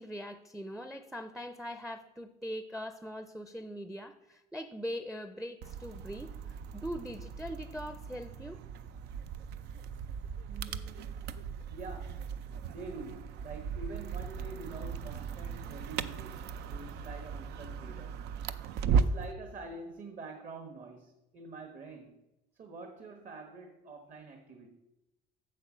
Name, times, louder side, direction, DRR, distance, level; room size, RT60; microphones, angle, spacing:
voice 1, 0.0-8.6, equal, ahead, 10 dB, 0.5 m, -41 dB
sound 1, 5.6-19.3, right 6 dB, 80° right, 0.5 m, -37 dB
voice 2, 10.5-11.4 11.7-18.2 18.9-22.1 22.5-24.7, right 3 dB, 50° right, 4 dB, 1.3 m, -46 dB
8.3 x 7.3 x 6.1 m, 0.96 s
cardioid pair, 110°, 17 cm